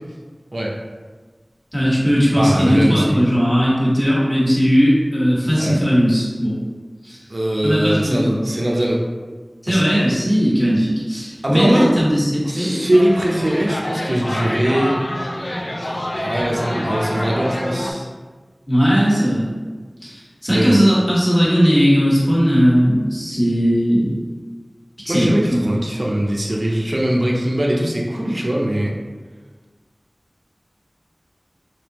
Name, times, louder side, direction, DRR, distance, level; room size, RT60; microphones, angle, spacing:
voice 1, 1.7-6.6 7.0-7.2 7.6-8.4 9.6-12.9 18.7-19.5 20.0-24.2 25.0-25.8, equal, 20° left, -7 dB, 1.2 m, -17 dB
voice 2, 2.3-3.2 5.6-5.8 7.3-9.0 9.7-9.9 11.4-11.9 12.5-15.0 15.8-18.1 20.5-20.8 25.1-28.9, right 1 dB, 65° right, -3 dB, 0.5 m, -21 dB
sound 1, 12.9-17.9, left 1 dB, 55° left, 0.4 m, -26 dB
3.5 x 2.7 x 2.9 m, 1.4 s
wide cardioid pair, 40°, 0 cm